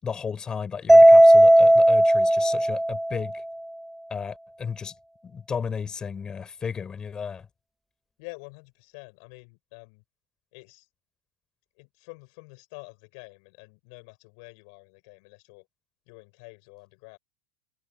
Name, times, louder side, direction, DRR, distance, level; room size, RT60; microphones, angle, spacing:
voice 1, 0.0-3.4 4.1-4.9 5.2-7.5, left 6 dB, 20° left, 6.2 m, -34 dB
Mallet percussion, 0.9-3.3, right 1 dB, ahead, 0.5 m, -15 dB
voice 2, 8.2-10.0 10.5-10.9 11.8-15.7 16.1-17.2, left 33 dB, 55° left, 7.2 m, -47 dB
hypercardioid pair, 100°, 3 cm